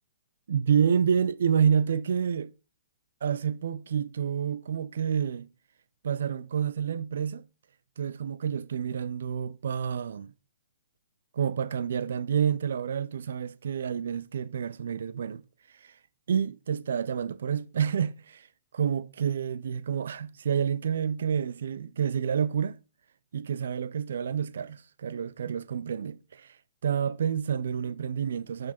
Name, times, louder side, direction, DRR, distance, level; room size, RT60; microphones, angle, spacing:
voice 1, 0.5-2.5 3.2-5.5 6.0-7.4 8.0-10.3 11.3-15.4 15.7-16.0 16.3-18.5 18.7-22.8 23.3-26.6 26.8-28.7, right 7 dB, 75° right, 0.3 m, -28 dB
5.9 x 4.7 x 4.3 m
hypercardioid pair, 155°, 0 cm